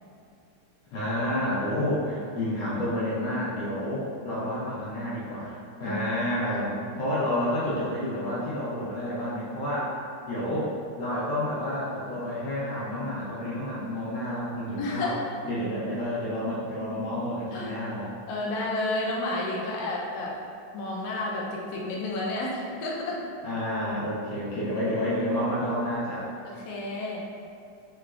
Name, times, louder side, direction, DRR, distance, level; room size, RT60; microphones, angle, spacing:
voice 1, 0.9-9.9 10.3-10.7 11.0-15.1 15.4-18.1 23.4-26.3, left 1 dB, 65° left, -8 dB, 1.3 m, -29 dB
voice 2, 14.8-15.3 17.5-17.8 18.3-20.3 20.7-23.2 26.4-27.2, left 2 dB, 85° left, -3 dB, 0.8 m, -31 dB
3.8 x 3.3 x 2.4 m, 2.4 s
omnidirectional pair, 2.4 m